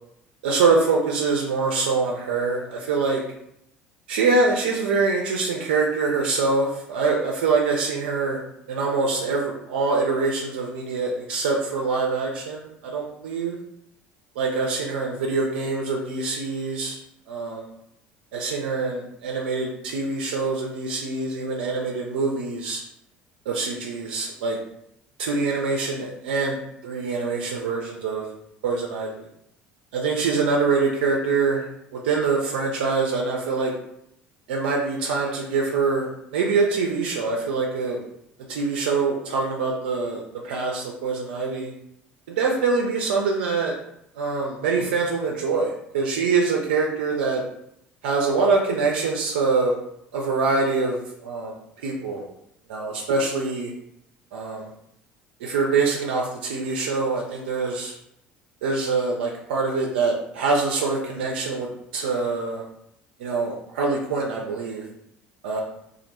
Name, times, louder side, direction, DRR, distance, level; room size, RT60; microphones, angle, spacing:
voice 1, 0.4-3.2 4.1-8.4 8.7-13.6 14.4-17.0 17.3-17.6 18.3-22.8 23.5-24.6 25.2-28.3 28.6-29.3 29.9-31.7 31.9-33.7 34.5-38.0 38.5-41.7 42.3-43.8 44.2-47.4 48.0-49.7 50.1-51.5 51.8-52.2 52.7-53.7 54.3-54.7 55.4-57.9 58.6-61.7 61.9-62.6 63.2-64.8 65.4-65.6, right 4 dB, 75° right, -1 dB, 0.4 m, -24 dB
2.3 x 2.1 x 2.9 m, 0.78 s
hypercardioid pair, 60°, 6 cm